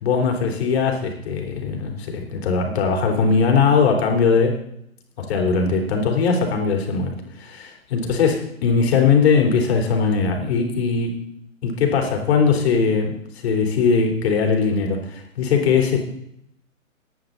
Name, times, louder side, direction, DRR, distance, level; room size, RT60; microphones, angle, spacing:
voice 1, 0.0-4.5 5.2-11.1 11.6-13.2 13.4-16.0, left 5 dB, 50° left, 3 dB, 3.6 m, -20 dB
16.0 x 10.5 x 3.9 m, 0.74 s
hypercardioid pair, 130°, 41 cm